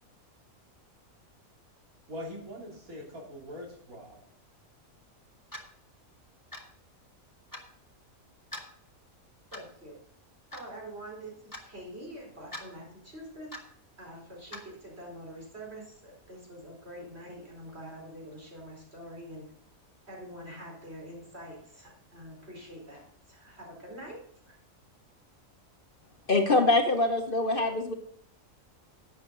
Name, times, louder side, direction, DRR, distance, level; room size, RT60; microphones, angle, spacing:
voice 1, 2.1-4.2, equal, 80° right, -1 dB, 3.7 m, -42 dB
Clock, 5.5-5.7 6.5-6.7 7.5-7.7 8.5-8.7 9.5-9.8 10.5-10.7 11.5-11.7 12.5-12.7 13.5-13.7 14.5-14.7, left 1 dB, 15° left, 1.4 m, -42 dB
voice 2, 9.5-10.0 10.5-13.5 14.0-19.5 20.1-24.6, right 1 dB, 45° right, -1 dB, 4.6 m, -45 dB
voice 3, 26.3-27.9, left 2 dB, 40° left, 4 dB, 1.2 m, -24 dB
12.0 x 8.7 x 3.9 m, 0.63 s
omnidirectional pair, 1.5 m